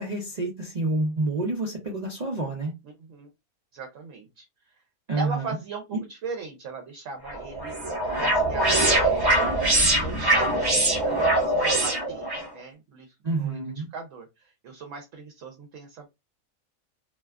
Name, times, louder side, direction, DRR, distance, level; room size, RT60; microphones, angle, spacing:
voice 1, 0.0-2.7 5.1-5.6 5.9-6.0 13.2-13.9, right 2 dB, 90° right, 0.3 m, -28 dB
voice 2, 3.7-4.5 5.1-7.7 8.2-9.3 9.8-12.3 12.5-13.6 13.9-16.2, right 4 dB, 65° right, 0.9 m, -38 dB
sound 1, 7.3-12.5, right 1 dB, 25° right, 0.6 m, -23 dB
2.7 x 2.3 x 2.2 m
omnidirectional pair, 1.6 m